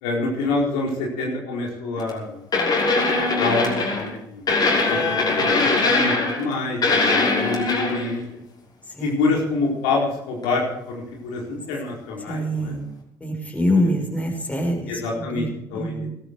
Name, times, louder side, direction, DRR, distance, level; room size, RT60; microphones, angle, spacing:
voice 1, 0.0-2.4 3.2-4.4 4.9-5.5 5.8-8.2 9.0-12.8 14.9-15.9, left 3 dB, 85° left, -2 dB, 4.6 m, -26 dB
sound 1, 2.0-2.1 2.5-4.1 4.5-6.5 6.8-8.1 10.4-10.5, left 3 dB, 45° left, 6.0 m, -21 dB
voice 2, 12.3-12.9 13.2-15.5 15.7-16.1, equal, 15° left, 1 dB, 6.1 m, -25 dB
18.0 x 12.5 x 4.7 m, 0.80 s
hypercardioid pair, 60°, 10 cm